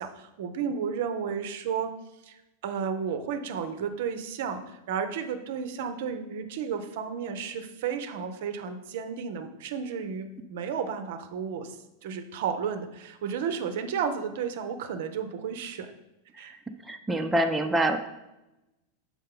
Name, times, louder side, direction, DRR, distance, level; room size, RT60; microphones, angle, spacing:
voice 1, 0.0-1.9 2.2-2.4 2.6-11.8 12.0-15.9 16.4-16.6, right 7 dB, 55° right, 8 dB, 0.6 m, -32 dB
voice 2, 16.9-18.0, right 1 dB, 10° right, 5 dB, 0.4 m, -25 dB
6.5 x 4.9 x 3.7 m, 0.96 s
figure-of-eight pair, 90°, 0 cm